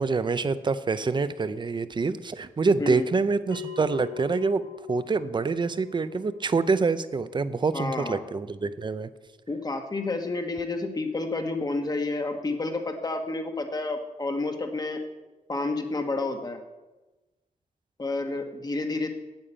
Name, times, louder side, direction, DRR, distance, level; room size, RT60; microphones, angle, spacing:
voice 1, 0.0-4.6 4.9-9.1, right 4 dB, 30° right, 14 dB, 0.5 m, -26 dB
Bell, 3.5-8.6, left 10 dB, 85° left, 1.9 m, -44 dB
voice 2, 7.7-8.2 9.5-15.0 15.5-16.6 18.0-19.1, left 2 dB, 25° left, 5 dB, 1.2 m, -30 dB
8.9 x 8.4 x 8.8 m, 1.1 s
wide cardioid pair, 175°, 15 cm